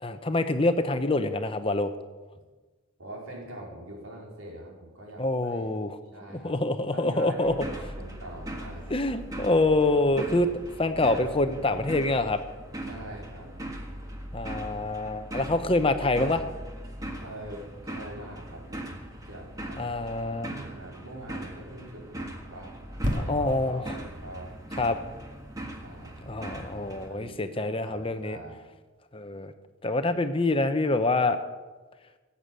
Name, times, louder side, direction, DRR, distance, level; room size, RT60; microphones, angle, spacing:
voice 1, 0.0-1.9 5.2-6.0 6.4-7.5 8.9-10.5 10.8-12.4 14.3-16.4 19.8-20.5 23.3-24.0 24.8-25.0 26.3-28.4 29.1-29.5 29.8-31.4, left 2 dB, 25° left, 9 dB, 0.8 m, -26 dB
voice 2, 3.0-5.7 6.1-6.5 6.9-8.8 12.8-13.5 16.9-17.0 17.2-19.0 19.3-19.8 20.3-22.7 23.2-24.6 25.8-26.3 26.9-28.6, right 1 dB, 80° right, -2 dB, 4.7 m, -43 dB
sound 1, 7.4-27.1, right 1 dB, 15° right, 1.6 m, -40 dB
sound 2, 23.0-26.6 27.2-27.3, equal, 35° right, 2.2 m, -35 dB
17.5 x 8.4 x 7.7 m, 1.3 s
head